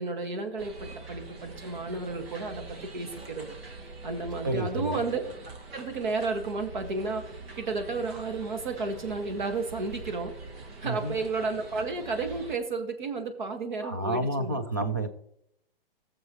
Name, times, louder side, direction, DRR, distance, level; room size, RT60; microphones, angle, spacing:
voice 1, 0.0-3.5 4.0-5.2 5.7-10.3 10.8-14.6, right 3 dB, 55° right, 5 dB, 1.9 m, -32 dB
sound 1, 0.6-12.6, right 3 dB, 80° right, 2.3 m, -44 dB
voice 2, 4.4-5.0 10.8-11.2 13.8-15.1, right 1 dB, 20° right, 9 dB, 0.4 m, -30 dB
17.0 x 7.3 x 3.1 m, 0.77 s
hypercardioid pair, 180°, 30 cm